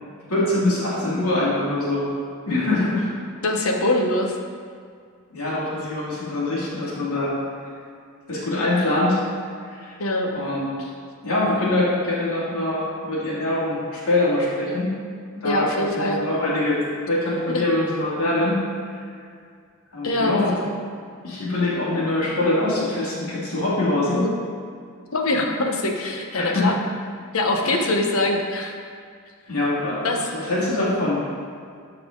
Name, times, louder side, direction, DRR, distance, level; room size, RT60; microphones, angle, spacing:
voice 1, 0.3-2.1 2.4-3.1 5.3-7.4 8.3-9.2 9.6-9.9 10.3-10.7 11.2-14.9 15.3-16.8 17.1-18.6 19.9-20.5 21.2-24.2 26.4-26.7 27.6-27.9 29.5-31.3, left 2 dB, 90° left, -7 dB, 2.6 m, -23 dB
voice 2, 3.4-4.3 10.0-10.3 15.4-16.2 17.5-17.6 20.0-20.4 24.1-24.3 25.1-26.7 27.3-28.7 30.0-30.2, left 2 dB, 70° left, 2 dB, 1.1 m, -23 dB
12.5 x 5.8 x 3.9 m, 2.2 s
head